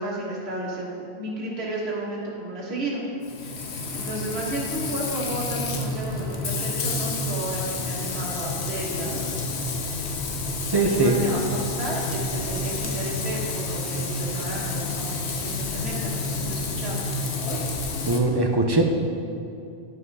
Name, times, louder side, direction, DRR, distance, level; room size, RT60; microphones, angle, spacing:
voice 1, 0.0-3.0 3.4-3.7 3.9-9.4 10.7-15.1 15.4-17.1, right 1 dB, 70° right, -5 dB, 1.8 m, -33 dB
Frying (food), 3.2-18.2, left 3 dB, 80° left, 1.1 m, -29 dB
voice 2, 10.7-11.2 18.0-18.8, right 2 dB, 30° right, 3 dB, 0.6 m, -21 dB
11.0 x 5.7 x 4.8 m, 2.6 s
omnidirectional pair, 1.1 m